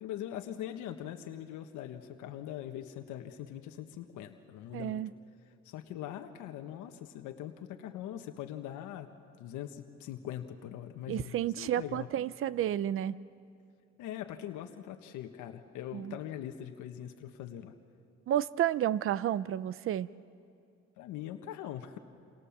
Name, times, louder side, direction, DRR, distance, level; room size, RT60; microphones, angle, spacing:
voice 1, 0.0-5.0 5.6-9.1 9.4-12.1 14.0-17.7 21.0-22.0, left 11 dB, 80° left, 6 dB, 1.6 m, -42 dB
voice 2, 4.7-5.1 11.1-13.2 15.9-16.2 18.3-20.1, right 11 dB, 45° right, 17 dB, 0.7 m, -31 dB
29.0 x 28.0 x 7.4 m, 2.5 s
cardioid pair, 135°, 30 cm